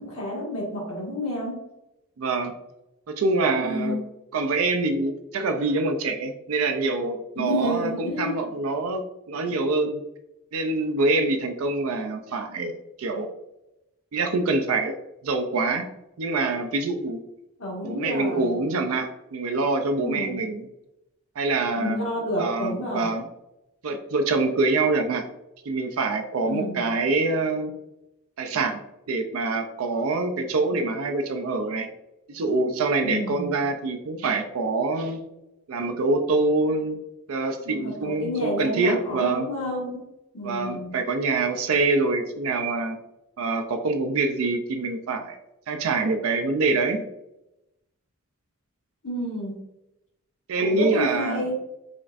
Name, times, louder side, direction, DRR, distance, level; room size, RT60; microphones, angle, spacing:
voice 1, 0.0-1.6 3.5-4.0 7.4-8.5 17.6-18.6 20.0-20.4 21.8-23.1 26.4-26.9 33.0-33.5 37.6-39.9 40.3-41.0 49.0-49.6 50.6-51.5, left 1 dB, 75° left, -4 dB, 1.5 m, -30 dB
voice 2, 2.2-2.5 3.2-4.0 4.3-10.0 10.5-13.3 14.1-14.9 15.2-15.9 16.2-17.2 17.8-20.7 21.4-22.0 22.4-23.3 23.8-25.3 25.7-27.7 28.4-28.8 29.1-31.9 32.3-35.2 35.7-37.0 37.3-39.5 40.4-43.0 43.4-45.4 45.7-47.1 50.5-51.5, right 3 dB, 80° right, 6 dB, 0.4 m, -25 dB
5.1 x 2.5 x 2.4 m, 0.90 s
head